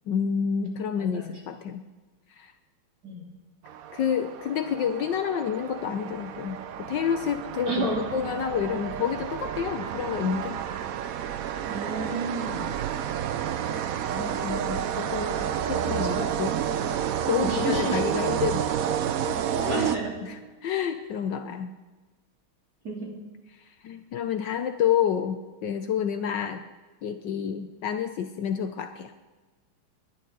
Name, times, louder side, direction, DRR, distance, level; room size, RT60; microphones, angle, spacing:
voice 1, 0.1-1.8 2.4-2.5 3.9-10.6 14.1-16.6 17.3-18.6 19.5-21.7 23.8-26.6 27.0-29.1, left 8 dB, 65° left, 8 dB, 1.3 m, -29 dB
voice 2, 1.0-1.3 3.0-3.2 7.7-8.1 11.6-12.7 15.9-16.1 17.5-18.0 19.7-20.1 22.8-23.1, right 2 dB, 45° right, -2 dB, 3.4 m, -31 dB
sound 1, 3.6-20.5, right 9 dB, 75° right, 0.8 m, -30 dB
30.0 x 11.0 x 3.9 m, 1.3 s
omnidirectional pair, 2.3 m